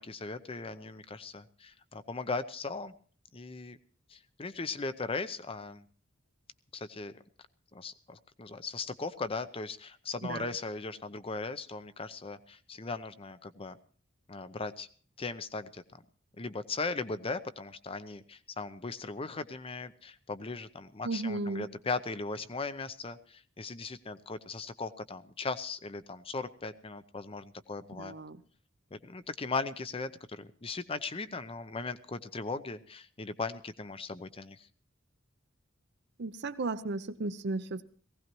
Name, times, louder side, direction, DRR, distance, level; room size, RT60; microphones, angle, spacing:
voice 1, 0.0-2.9 3.3-3.8 4.1-5.8 6.7-7.2 7.7-13.8 14.3-14.9 15.2-15.8 16.4-28.1 28.9-34.7, left 3 dB, 30° left, 0.7 m, -38 dB
voice 2, 21.0-21.7 28.0-28.4 36.2-37.8, right 3 dB, 55° right, 0.7 m, -34 dB
19.0 x 16.5 x 3.0 m
head